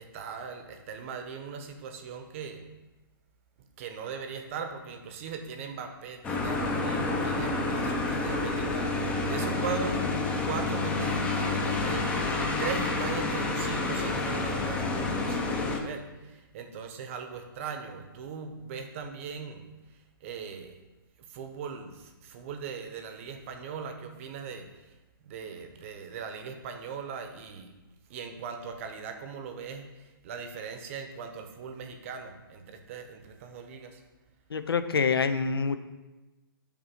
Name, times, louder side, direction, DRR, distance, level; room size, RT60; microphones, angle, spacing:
voice 1, 0.0-2.6 3.8-10.0 10.4-12.2 12.6-19.7 20.2-20.8 21.2-24.9 25.2-27.7 28.1-34.0, right 6 dB, 35° right, 6 dB, 0.8 m, -39 dB
sound 1, 6.2-15.8, left 3 dB, 10° left, 0.5 m, -29 dB
voice 2, 34.5-35.8, left 5 dB, 90° left, 11 dB, 0.5 m, -26 dB
6.8 x 2.8 x 5.7 m, 1.1 s
hypercardioid pair, 150°, 12 cm